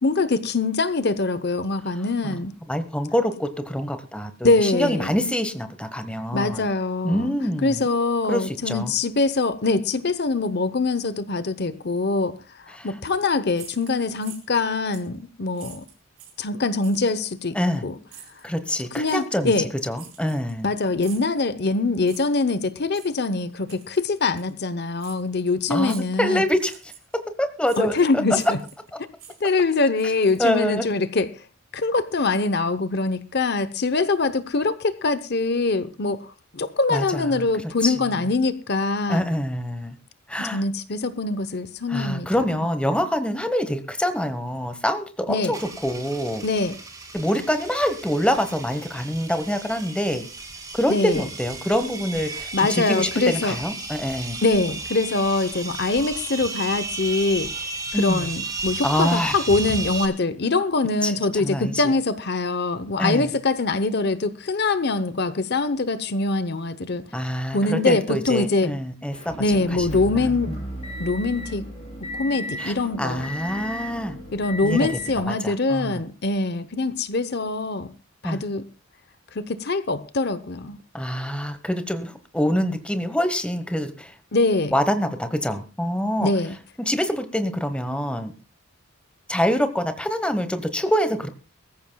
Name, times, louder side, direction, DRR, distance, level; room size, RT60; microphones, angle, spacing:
voice 1, 0.0-2.5 4.4-5.1 6.3-7.3 7.6-12.4 12.7-15.8 16.4-17.6 17.8-17.9 19.0-19.7 20.6-26.4 27.8-28.6 29.4-31.3 31.7-39.2 40.5-42.3 45.3-45.5 46.4-46.7 50.9-51.2 52.5-53.6 54.4-57.5 57.9-67.0 67.5-68.7 69.4-70.5 71.0-71.6 72.1-73.3 74.3-77.9 78.2-78.6 79.3-80.8 84.3-84.7 86.2-86.5, left 3 dB, 50° left, 13 dB, 0.8 m, -23 dB
voice 2, 2.7-6.7 7.0-7.9 8.3-8.9 12.7-12.9 17.5-17.8 18.4-19.5 19.8-20.7 25.7-26.7 27.1-28.2 30.4-30.9 36.9-37.5 37.8-37.9 39.1-39.9 40.3-40.6 41.9-46.4 47.1-50.3 50.7-54.4 57.9-58.3 58.8-59.3 61.0-61.8 63.0-63.3 67.1-70.6 72.6-74.2 74.6-74.9 75.2-76.0 78.2-78.4 80.9-84.1 84.7-86.3 86.8-88.3 89.3-91.3, equal, 5° left, 9 dB, 1.2 m, -25 dB
sound 1, 13.5-14.6 14.9-15.1 15.5-16.4 16.8-17.2 18.1-18.4 19.0-19.2 19.9-20.7 21.0-21.3 22.0-22.4 22.9-23.1 23.7-24.0 24.4-24.5 25.0-25.2 25.8-26.2 26.5-27.2 27.7-27.8 28.3-28.9 29.1-30.7, right 8 dB, 70° right, 4.4 m, -46 dB
sound 2, 45.5-60.1, right 3 dB, 15° right, 2.4 m, -34 dB
Motor vehicle (road) / Engine, 69.1-75.2, equal, 30° left, 7.9 m, -35 dB
22.5 x 14.5 x 2.3 m, 0.33 s
head